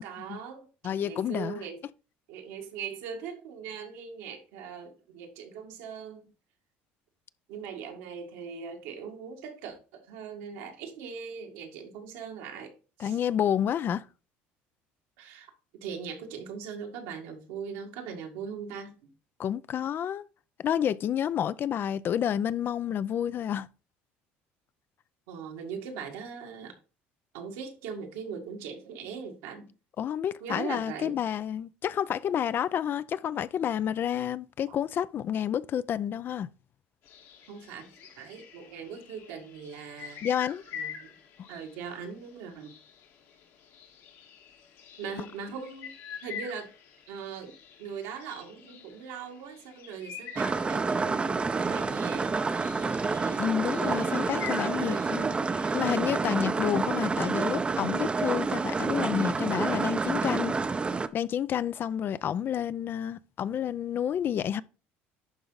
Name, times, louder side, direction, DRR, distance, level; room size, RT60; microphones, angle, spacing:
voice 1, 0.0-1.9 2.3-6.2 7.5-13.2 15.2-15.5 15.8-19.0 25.3-26.8 27.3-29.7 30.4-31.2 34.7-34.8 37.5-40.2 40.7-41.1 41.5-42.7 45.0-45.9 46.2-46.7 47.1-51.4 51.7-52.4 53.6-54.3 54.6-55.1, right 6 dB, 85° right, 1.9 m, -40 dB
voice 2, 0.8-1.6 13.0-14.0 19.4-20.2 20.6-23.7 30.0-36.5 40.2-40.6 53.4-55.3 55.7-60.5 61.1-64.6, left 9 dB, 45° left, 0.4 m, -29 dB
sound 1, 37.0-55.9, left 7 dB, 70° left, 1.9 m, -46 dB
sound 2, 50.4-61.1, right 4 dB, 20° right, 0.5 m, -28 dB
11.0 x 3.8 x 3.9 m
supercardioid pair, 95°, 5 cm